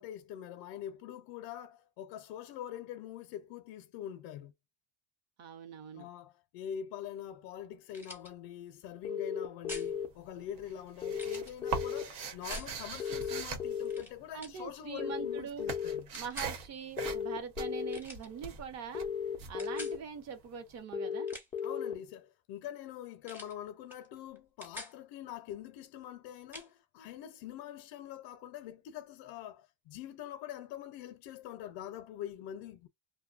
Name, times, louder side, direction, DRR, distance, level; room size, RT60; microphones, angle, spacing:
voice 1, 0.0-4.5 5.9-16.1 21.6-32.9, left 10 dB, 65° left, 0.6 m, -44 dB
voice 2, 5.4-6.1 14.3-15.7 16.1-19.1 19.5-21.3, right 7 dB, 35° right, 0.8 m, -43 dB
sound 1, 7.9-8.3 9.7-9.9 11.1-11.5 12.5-12.7 13.8-14.1 14.4-14.6 16.1-16.5 17.9-18.3 19.6-20.0 21.1-21.6 23.2-23.6 23.9-24.1 24.3-25.0 26.5-26.7, left 1 dB, 5° right, 0.7 m, -46 dB
sound 2, 9.0-10.1 11.0-12.0 13.0-14.0 15.0-16.0 17.0-18.0 18.9-20.0 20.9-21.9, left 7 dB, 15° left, 0.3 m, -35 dB
sound 3, 9.7-10.3 10.6-14.6 14.9-20.5, right 5 dB, 75° right, 1.1 m, -41 dB
2.6 x 2.1 x 2.4 m
cardioid pair, 155°, 44 cm